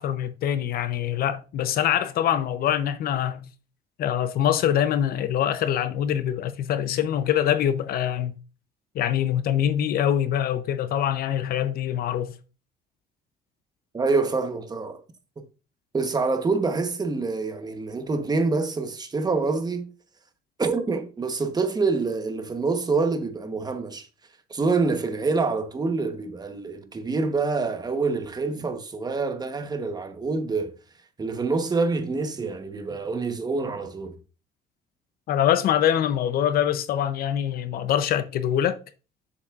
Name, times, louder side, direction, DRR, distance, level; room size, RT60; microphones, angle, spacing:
voice 1, 0.0-3.5 4.0-8.3 8.9-12.3 35.3-38.8, left 10 dB, 65° left, 0.6 m, -24 dB
voice 2, 13.9-15.0 15.9-19.9 20.6-24.1 24.5-30.7 31.2-34.2, right 4 dB, 25° right, 1.0 m, -26 dB
7.2 x 6.9 x 2.4 m
cardioid pair, 110°, 17 cm